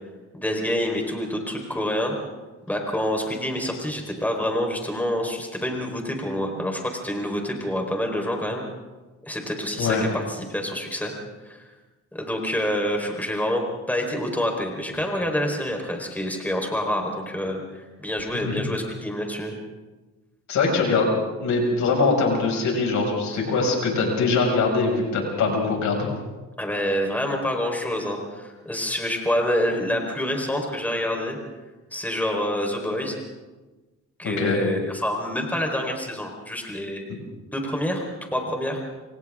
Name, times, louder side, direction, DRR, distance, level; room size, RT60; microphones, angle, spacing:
voice 1, 0.4-2.1 2.7-8.6 9.2-11.1 11.4-11.6 12.1-19.6 26.6-31.4 31.9-33.2 34.2-37.0 37.5-38.1 38.3-38.8, left 1 dB, 5° left, 2 dB, 4.5 m, -27 dB
voice 2, 20.5-21.1 21.4-26.1 34.2-34.6 37.1-37.2, left 3 dB, 70° left, 1 dB, 6.4 m, -22 dB
28.5 x 26.0 x 3.8 m, 1.2 s
cardioid pair, 90°, 30 cm